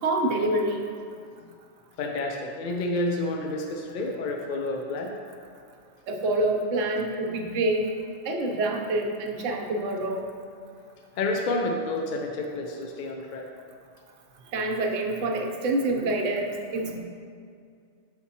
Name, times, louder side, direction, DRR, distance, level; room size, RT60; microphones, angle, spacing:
voice 1, 0.0-0.9 6.1-7.9 8.2-10.3 14.5-17.0, right 2 dB, 80° right, 2 dB, 1.0 m, -26 dB
voice 2, 2.0-5.1 11.2-13.5, left 2 dB, 60° left, 2 dB, 0.5 m, -29 dB
6.0 x 5.7 x 2.8 m, 2.3 s
omnidirectional pair, 1.3 m